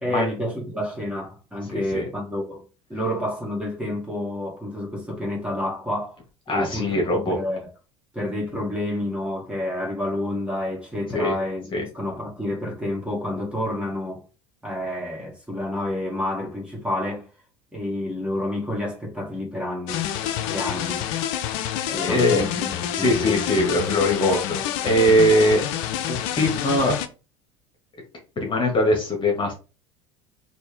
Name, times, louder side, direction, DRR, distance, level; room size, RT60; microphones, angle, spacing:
voice 1, 0.0-2.6 2.9-6.2 6.5-7.6 8.1-14.2 14.6-17.3 17.7-20.1 20.5-21.1 21.9-23.4, left 1 dB, 5° right, 2.1 m, -29 dB
voice 2, 1.7-2.0 6.5-7.4 11.1-11.3 11.7-11.8 22.0-22.4 22.9-25.6 26.1-27.0 28.3-29.5, equal, 35° left, 1.7 m, -21 dB
sound 1, 19.9-27.1, left 10 dB, 60° left, 0.6 m, -28 dB
4.2 x 2.8 x 3.5 m
hypercardioid pair, 75°, 15 cm